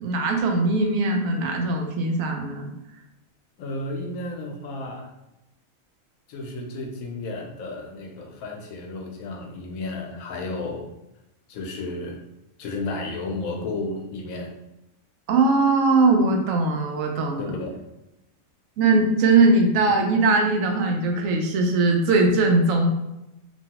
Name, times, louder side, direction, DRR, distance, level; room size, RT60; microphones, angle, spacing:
voice 1, 0.0-2.7 15.3-17.5 18.8-22.9, right 3 dB, 75° right, 2 dB, 0.9 m, -20 dB
voice 2, 3.6-5.1 6.3-10.9 11.5-12.2 12.6-14.5 17.4-17.8, left 2 dB, 90° left, 2 dB, 1.1 m, -32 dB
3.0 x 2.2 x 2.8 m, 0.91 s
omnidirectional pair, 1.4 m